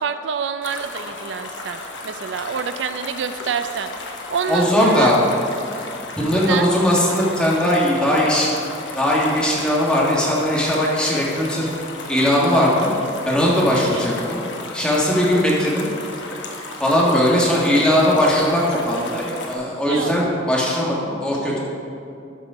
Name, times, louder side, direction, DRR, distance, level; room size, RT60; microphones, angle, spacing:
voice 1, 0.0-5.1 6.3-6.7 13.7-14.0 19.9-20.2, right 6 dB, 80° right, 10 dB, 0.4 m, -27 dB
sound 1, 0.6-19.5, left 3 dB, 90° left, 1.1 m, -34 dB
voice 2, 4.5-5.2 6.2-8.5 9.0-11.7 12.1-12.9 13.3-14.4 14.7-15.8 16.8-21.6, equal, 5° left, -5 dB, 1.7 m, -19 dB
12.0 x 5.4 x 4.9 m, 2.6 s
head